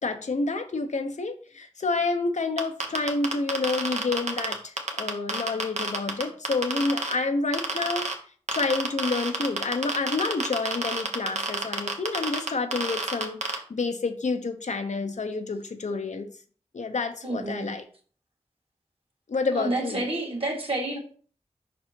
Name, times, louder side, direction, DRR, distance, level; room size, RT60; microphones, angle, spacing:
voice 1, 0.0-8.1 8.5-16.3 16.7-17.8 19.3-20.1, left 3 dB, 75° left, 6 dB, 0.7 m, -29 dB
sound 1, 2.6-7.1 7.5-8.1 8.5-13.5, right 3 dB, 70° right, 1.1 m, -28 dB
voice 2, 17.2-17.7 19.5-21.0, right 2 dB, 50° right, -1 dB, 2.0 m, -29 dB
5.3 x 4.2 x 4.4 m, 0.43 s
wide cardioid pair, 65°, 12 cm